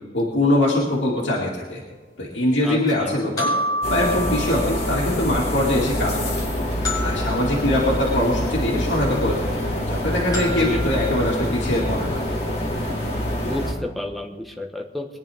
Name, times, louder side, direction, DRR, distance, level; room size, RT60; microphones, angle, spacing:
voice 1, 0.1-1.8 2.2-3.5 3.9-6.4 7.0-12.2, left 1 dB, 85° left, -5 dB, 2.4 m, -22 dB
Childrens Glockenspiel, 0.9-1.0 3.4-5.2 6.8-8.5 10.3-11.8, left 1 dB, 20° left, 5.4 m, -30 dB
voice 2, 2.6-3.1 10.5-10.8 13.4-15.2, left 1 dB, ahead, 1 dB, 1.2 m, -31 dB
sound 1, 3.8-13.7, left 1 dB, 35° left, 2.5 m, -25 dB
22.5 x 10.5 x 3.6 m, 1.4 s
head